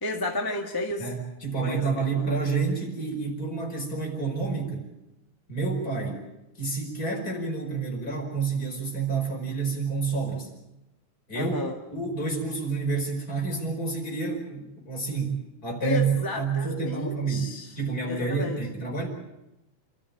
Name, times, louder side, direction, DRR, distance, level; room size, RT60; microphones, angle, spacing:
voice 1, 0.0-1.0 1.6-2.3 11.3-11.7 15.8-17.7 18.1-18.6, left 2 dB, 10° left, 1 dB, 1.2 m, -32 dB
voice 2, 1.0-4.9 5.5-6.2 6.6-10.5 11.3-11.6 11.9-19.1, right 4 dB, 25° left, 1 dB, 5.4 m, -29 dB
28.0 x 14.0 x 8.8 m, 0.93 s
omnidirectional pair, 3.5 m